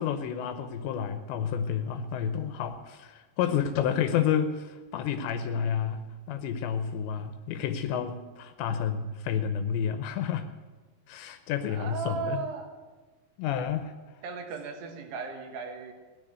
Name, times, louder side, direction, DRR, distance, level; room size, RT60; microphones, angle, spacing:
voice 1, 0.0-10.5 11.1-12.4 13.4-13.9, left 8 dB, 80° left, 8 dB, 3.0 m, -30 dB
voice 2, 11.7-12.7 14.2-15.9, right 5 dB, 70° right, 5 dB, 3.5 m, -36 dB
17.5 x 10.0 x 7.9 m, 1.3 s
omnidirectional pair, 5.2 m